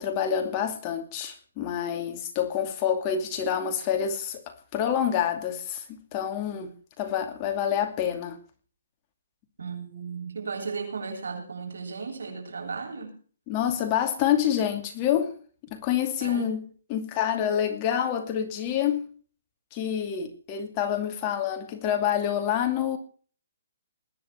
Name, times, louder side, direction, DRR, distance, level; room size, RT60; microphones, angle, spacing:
voice 1, 0.0-8.4 13.5-15.4 15.7-16.6 16.9-19.1 19.7-23.0, left 9 dB, 25° left, 2.5 m, -27 dB
voice 2, 9.6-13.1 16.2-16.5, right 5 dB, 80° right, 7.8 m, -35 dB
20.5 x 10.5 x 4.6 m
hypercardioid pair, 155°, 0 cm